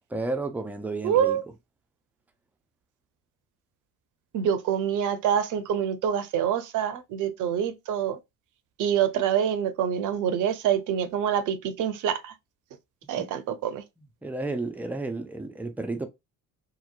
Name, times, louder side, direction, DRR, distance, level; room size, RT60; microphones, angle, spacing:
voice 1, 0.1-1.4 14.0-16.1, right 2 dB, 5° right, 0.4 m, -32 dB
voice 2, 1.0-1.4 4.3-8.2 8.8-12.3 13.1-13.8, right 9 dB, 45° right, 0.6 m, -26 dB
2.8 x 2.0 x 2.4 m
figure-of-eight pair, 55°, 45 cm